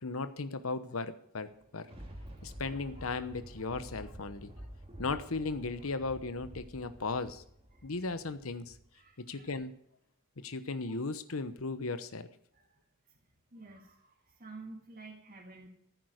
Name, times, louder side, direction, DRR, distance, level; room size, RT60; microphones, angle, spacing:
voice 1, 0.0-1.9 2.4-4.5 5.0-7.4 7.8-8.7 9.3-9.7 10.4-12.3, left 3 dB, 80° left, 11 dB, 1.0 m, -36 dB
Thunder, 1.5-9.0 9.5-9.6, equal, 25° right, 2.6 m, -49 dB
voice 2, 7.7-8.1 8.9-9.5 12.5-12.8 13.1-13.2 13.5-15.7, right 3 dB, 45° right, -1 dB, 2.0 m, -51 dB
15.0 x 9.3 x 6.5 m, 0.70 s
head